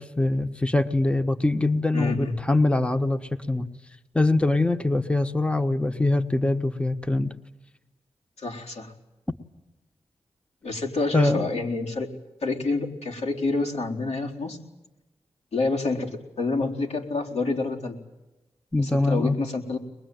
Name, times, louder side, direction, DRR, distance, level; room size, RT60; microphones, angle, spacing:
voice 1, 0.0-3.7 4.1-7.3 11.1-11.4 18.7-19.4, left 2 dB, 10° left, 8 dB, 1.2 m, -23 dB
voice 2, 1.9-2.3 8.4-8.9 10.6-12.1 12.4-14.6 15.5-18.0 18.8-19.8, left 3 dB, 75° left, 1 dB, 4.2 m, -28 dB
23.0 x 21.5 x 9.4 m, 1.0 s
cardioid pair, 50°, 11 cm